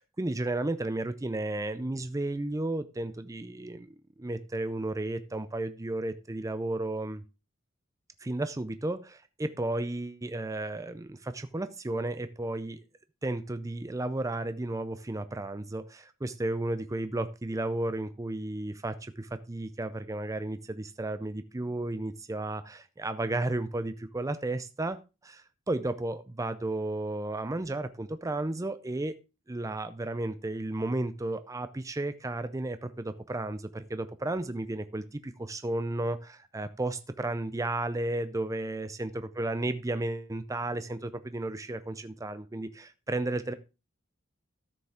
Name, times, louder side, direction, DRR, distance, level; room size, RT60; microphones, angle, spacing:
voice 1, 0.0-7.2 8.2-12.8 13.2-29.2 29.5-43.5, right 2 dB, 15° right, 11 dB, 0.5 m, -33 dB
13.0 x 6.8 x 3.6 m, 0.29 s
head